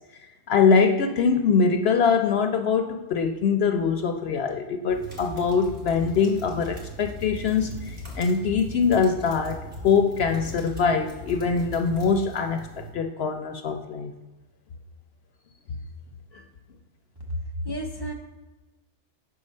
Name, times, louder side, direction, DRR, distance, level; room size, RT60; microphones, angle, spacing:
voice 1, 0.5-9.6 9.8-14.1 16.3-16.4, left 5 dB, 65° left, 5 dB, 0.7 m, -23 dB
sound 1, 4.9-12.9, equal, 45° right, 2.2 m, -39 dB
voice 2, 17.3-18.1, equal, 25° right, 0 dB, 0.6 m, -31 dB
5.9 x 4.7 x 5.3 m, 1.2 s
omnidirectional pair, 1.3 m